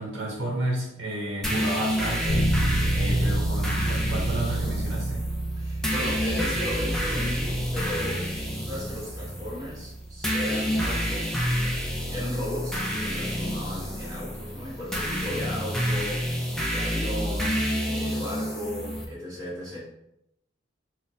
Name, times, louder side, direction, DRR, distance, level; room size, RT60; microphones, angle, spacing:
voice 1, 0.0-2.5 2.9-5.2, right 1 dB, 60° right, -3 dB, 0.6 m, -31 dB
sound 1, 1.4-19.0, equal, 5° left, 0.3 m, -29 dB
Bass guitar, 2.3-12.0, right 1 dB, 60° left, 0.6 m, -30 dB
voice 2, 5.6-8.3 8.5-11.5 12.1-19.8, left 1 dB, 15° right, -7 dB, 1.2 m, -36 dB
4.1 x 2.0 x 2.6 m, 0.84 s
head